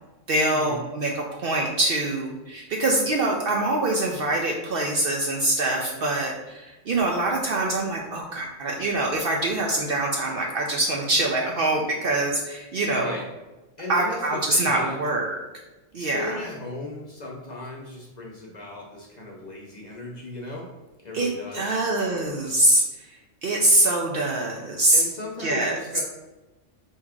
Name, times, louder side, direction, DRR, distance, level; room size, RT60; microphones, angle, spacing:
voice 1, 0.3-13.2 13.9-15.4 15.9-16.4 21.1-22.8 23.4-25.0 25.4-25.8, right 2 dB, 60° right, 0 dB, 0.6 m, -24 dB
voice 2, 12.9-13.2 13.8-15.0 16.0-20.6 21.0-21.8 24.9-26.0, left 2 dB, 45° left, -2 dB, 0.7 m, -37 dB
4.5 x 2.7 x 3.6 m, 1.1 s
omnidirectional pair, 1.3 m